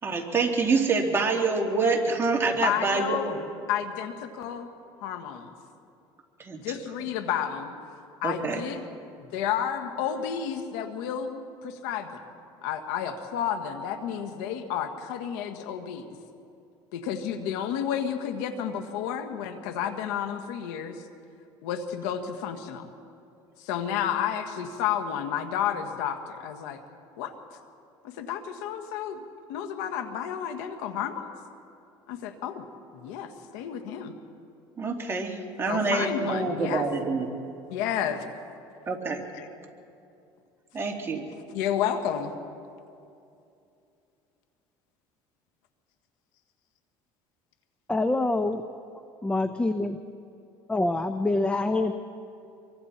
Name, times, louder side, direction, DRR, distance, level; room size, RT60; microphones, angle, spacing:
voice 1, 0.0-3.2 6.4-6.6 8.2-8.6 34.8-37.3 38.9-39.2 40.7-41.2, right 4 dB, 25° right, 0 dB, 2.9 m, -26 dB
voice 2, 2.6-3.4 3.7-4.7 5.0-5.5 6.6-7.7 8.2-8.8 9.2-12.2 12.6-16.0 16.9-21.0 21.6-22.9 23.6-26.8 27.2-27.3 28.2-29.2 29.5-31.3 32.1-32.6 32.9-34.1 35.7-36.8 37.7-38.3 39.3-39.5 41.5-42.3, left 9 dB, 90° left, 6 dB, 1.7 m, -31 dB
voice 3, 47.9-48.6 49.2-50.0 50.7-51.9, left 2 dB, 10° left, 8 dB, 0.8 m, -25 dB
26.0 x 23.5 x 4.4 m, 2.6 s
cardioid pair, 110°, 10 cm